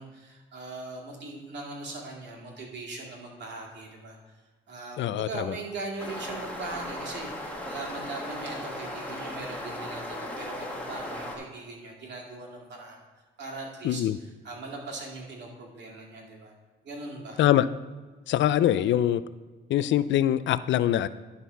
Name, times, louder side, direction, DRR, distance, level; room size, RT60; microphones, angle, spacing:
voice 1, 0.0-4.2 4.7-13.0 13.4-14.0 14.4-16.5 16.8-17.4, right 3 dB, 60° right, 2.3 m, -40 dB
voice 2, 5.0-5.5 13.8-14.2 17.4-17.7 18.3-19.2 19.7-21.1, left 12 dB, 70° left, 0.4 m, -23 dB
sound 1, 6.0-11.4, left 1 dB, 5° left, 1.7 m, -37 dB
11.5 x 4.1 x 5.5 m
cardioid pair, 90°, 20 cm